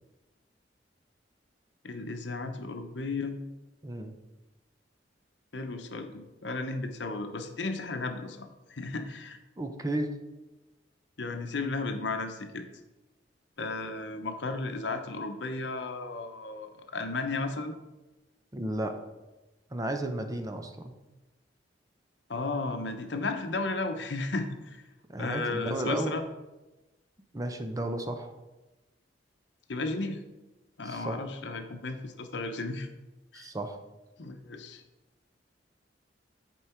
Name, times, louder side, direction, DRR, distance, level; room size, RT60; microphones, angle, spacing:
voice 1, 1.8-3.4 5.5-9.4 11.2-12.7 13.6-17.7 22.3-24.8 25.2-26.2 29.7-30.2 30.8-32.9 33.3-33.5 34.2-34.8, left 3 dB, 70° left, 7 dB, 0.9 m, -34 dB
voice 2, 3.8-4.1 9.6-10.1 18.5-18.9 19.7-20.9 25.1-26.2 27.3-28.3 30.8-31.2 33.3-33.8, right 1 dB, 20° right, 6 dB, 0.7 m, -33 dB
10.0 x 4.6 x 4.4 m, 1.1 s
head